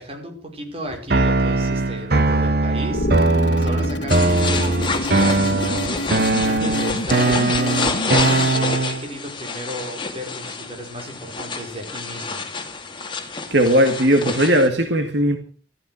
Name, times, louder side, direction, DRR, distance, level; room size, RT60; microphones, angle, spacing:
voice 1, 0.0-12.5, equal, 30° right, 5.3 m, -34 dB
sound 1, 1.1-9.1, right 2 dB, 60° right, 1.3 m, -20 dB
sound 2, 2.9-8.7, left 1 dB, 70° left, 1.6 m, -28 dB
sound 3, 4.1-14.7, left 4 dB, 25° left, 2.4 m, -28 dB
voice 2, 13.5-15.4, equal, 75° right, 2.1 m, -17 dB
14.5 x 14.0 x 6.5 m
head